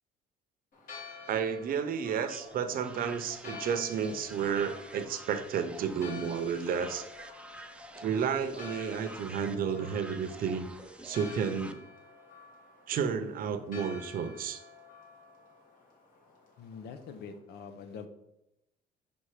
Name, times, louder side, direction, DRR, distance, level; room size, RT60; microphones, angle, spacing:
Church bell, 0.7-17.4, left 5 dB, 55° left, 1.9 m, -50 dB
voice 1, 1.3-7.1 8.0-10.7 11.0-11.8 12.9-14.6, right 7 dB, 60° right, 10 dB, 0.7 m, -32 dB
sound 1, 2.2-11.7, right 1 dB, 5° right, 0.5 m, -48 dB
voice 2, 16.6-18.1, left 5 dB, 75° left, 9 dB, 0.9 m, -44 dB
5.5 x 4.4 x 4.9 m, 0.85 s
cardioid pair, 110°, 17 cm